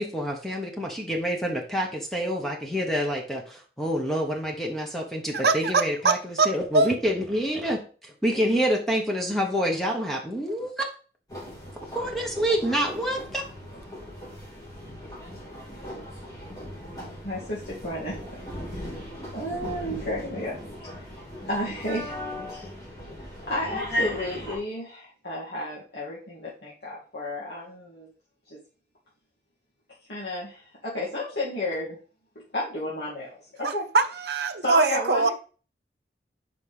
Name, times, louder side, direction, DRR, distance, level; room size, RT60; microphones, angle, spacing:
voice 1, 0.0-10.8 11.9-13.4, equal, ahead, 1.1 m, -27 dB
voice 2, 5.3-6.5 6.7-6.9 33.6-35.3, right 3 dB, 65° right, 0.7 m, -23 dB
sound 1, 11.3-24.6, left 1 dB, 20° left, 2.9 m, -37 dB
voice 3, 16.9-18.4 18.7-19.0 19.3-20.5 20.9-21.1 21.5-22.2 22.5-22.7 23.1-28.1 28.5-28.6 30.1-32.0 32.5-33.8 34.6-35.3, left 1 dB, 70° left, 2.2 m, -32 dB
5.2 x 5.0 x 5.6 m
head